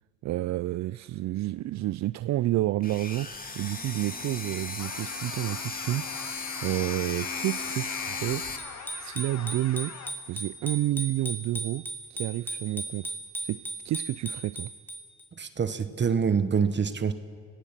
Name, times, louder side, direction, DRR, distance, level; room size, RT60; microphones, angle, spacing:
voice 1, 0.2-6.2 6.6-8.5 9.0-10.0 10.3-13.2 13.4-14.7, right 15 dB, 65° right, 0.4 m, -30 dB
sound 1, 2.8-8.6, left 4 dB, 30° left, 2.5 m, -36 dB
sound 2, 4.8-10.1, left 7 dB, 65° left, 2.0 m, -44 dB
Bicycle bell, 8.6-15.2, right 1 dB, 5° left, 3.2 m, -38 dB
voice 2, 15.4-17.1, right 6 dB, 35° right, 1.1 m, -26 dB
25.5 x 18.0 x 7.3 m
cardioid pair, 90°, 30 cm